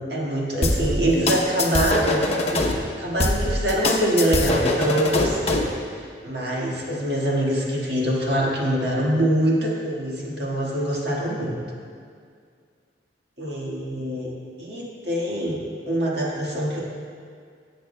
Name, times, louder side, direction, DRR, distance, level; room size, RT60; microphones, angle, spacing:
voice 1, 0.0-5.7 5.9-11.5 13.4-14.3 14.6-16.8, right 1 dB, 65° right, -4 dB, 1.7 m, -24 dB
sound 1, 0.6-2.7 3.2-5.7, left 2 dB, 35° left, 0.8 m, -23 dB
17.5 x 7.8 x 2.2 m, 2.1 s
head